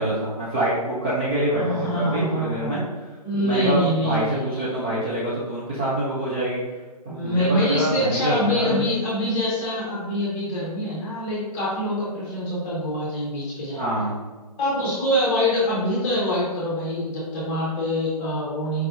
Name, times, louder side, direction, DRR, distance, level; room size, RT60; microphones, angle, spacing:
voice 1, 0.0-2.8 3.4-6.6 7.1-7.4 7.7-8.8 13.7-14.2, right 1 dB, 15° right, -9 dB, 0.5 m, -26 dB
voice 2, 1.5-2.8 3.2-5.0 7.1-13.8 14.6-18.9, equal, 10° left, -6 dB, 0.9 m, -25 dB
4.6 x 3.3 x 2.7 m, 1.3 s
figure-of-eight pair, 145°, 21 cm